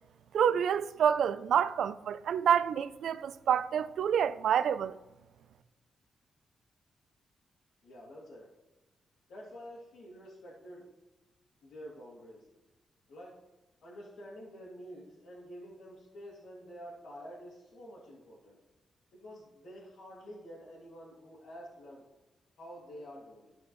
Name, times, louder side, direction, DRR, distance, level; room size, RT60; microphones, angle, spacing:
voice 1, 0.3-5.0, right 8 dB, 75° right, 0.4 m, -28 dB
voice 2, 7.8-8.5 9.3-10.9 11.6-12.4 13.1-13.3 13.8-18.6 19.1-22.0 22.6-23.5, equal, 75° left, 2.4 m, -48 dB
13.0 x 5.2 x 3.1 m
cardioid pair, 125°, 0 cm